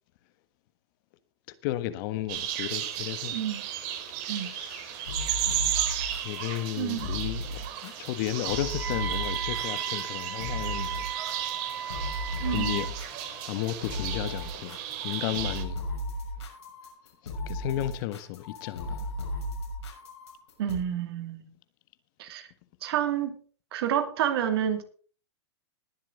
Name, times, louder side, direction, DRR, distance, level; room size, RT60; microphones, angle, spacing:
voice 1, 1.6-3.4 4.4-5.0 6.1-11.1 12.4-12.9 13.5-14.8 15.0-15.8 17.5-19.1, left 14 dB, 50° left, 1.5 m, -33 dB
sound 1, 2.3-15.6, right 11 dB, 50° right, 2.8 m, -34 dB
voice 2, 3.3-3.6 4.3-4.5 5.5-5.6 6.8-7.1 12.4-12.7 20.6-21.5 22.2-22.5 22.8-23.4 23.7-24.8, right 10 dB, 65° right, 2.6 m, -29 dB
sound 2, 5.1-20.8, equal, 90° left, 6.1 m, -36 dB
Wind instrument woodwind instrument, 8.4-12.9, right 8 dB, 85° right, 4.7 m, -37 dB
20.5 x 7.5 x 4.0 m
hypercardioid pair, 130°, 14 cm